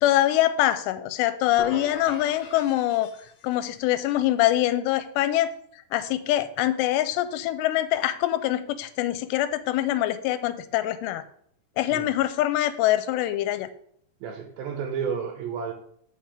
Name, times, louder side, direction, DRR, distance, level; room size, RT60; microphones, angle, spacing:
voice 1, 0.0-3.1 3.4-5.5 5.9-11.2 11.8-13.7, left 14 dB, 85° left, 12 dB, 2.7 m, -24 dB
sound 1, 1.6-3.7, left 1 dB, 55° left, 1.9 m, -40 dB
voice 2, 14.2-15.7, right 6 dB, 75° right, 4 dB, 2.4 m, -31 dB
7.9 x 6.0 x 5.0 m, 0.66 s
omnidirectional pair, 4.9 m